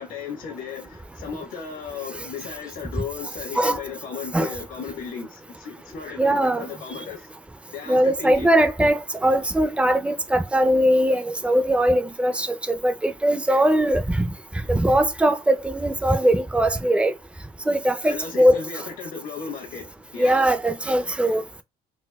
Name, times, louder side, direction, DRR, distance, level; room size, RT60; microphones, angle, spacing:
voice 1, 0.0-7.3 7.7-8.5 18.0-20.5, left 6 dB, 85° left, 1.1 m, -35 dB
voice 2, 6.2-6.7 7.9-14.3 14.7-17.1 17.7-18.6 20.2-21.4, right 1 dB, 5° right, 0.4 m, -20 dB
4.0 x 2.2 x 2.2 m
cardioid pair, 110°, 17 cm